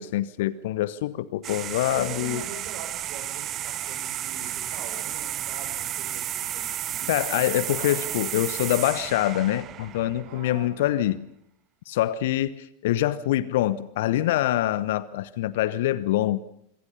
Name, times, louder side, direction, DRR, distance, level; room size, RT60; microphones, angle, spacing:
voice 1, 0.0-2.4 7.1-11.2 11.9-16.4, left 14 dB, 55° left, 1.1 m, -25 dB
sound 1, 1.4-10.6, right 12 dB, 30° right, 1.0 m, -32 dB
voice 2, 1.9-8.1 10.2-11.0, right 5 dB, 45° right, 6.9 m, -43 dB
26.0 x 25.0 x 5.6 m
figure-of-eight pair, 90°, 0 cm